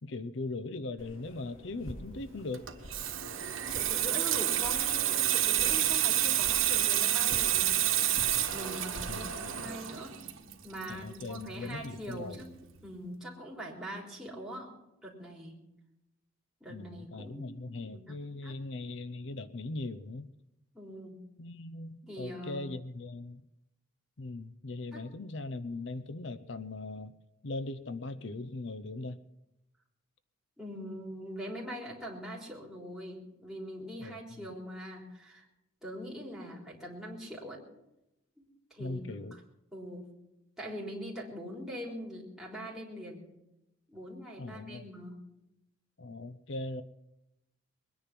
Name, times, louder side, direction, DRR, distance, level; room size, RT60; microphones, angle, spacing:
voice 1, 0.0-2.7 9.1-9.7 10.9-12.4 16.7-20.3 21.4-23.4 24.2-27.1 27.4-29.2 34.0-34.5 38.8-39.4 44.4-44.9 46.0-46.8, left 2 dB, 60° left, 13 dB, 0.6 m, -40 dB
sound 1, 1.0-9.7, equal, 75° left, 3.1 m, -47 dB
Water tap faucet / Sink (filling or washing), 2.5-11.8 12.1-12.4, right 12 dB, 75° right, 1.4 m, -29 dB
voice 2, 3.7-7.8 8.5-10.2 10.6-12.6 12.8-15.6 16.6-18.2 18.4-18.6 20.7-21.2 22.1-22.7 24.9-25.1 30.6-35.5 35.8-37.6 38.7-39.4 39.7-40.1 40.6-43.2 43.9-45.2, equal, ahead, -4 dB, 3.6 m, -42 dB
21.5 x 10.0 x 6.0 m, 0.90 s
head